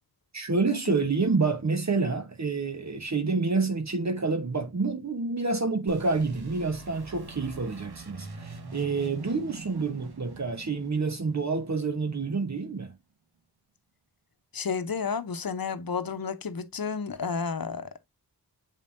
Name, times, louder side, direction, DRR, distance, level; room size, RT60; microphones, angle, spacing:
voice 1, 0.3-12.9, right 4 dB, 45° right, 1.0 m, -28 dB
sound 1, 5.9-12.4, right 4 dB, 75° right, 1.3 m, -44 dB
voice 2, 14.5-18.0, left 5 dB, 60° left, 0.8 m, -32 dB
7.4 x 5.3 x 2.6 m
wide cardioid pair, 75°, 39 cm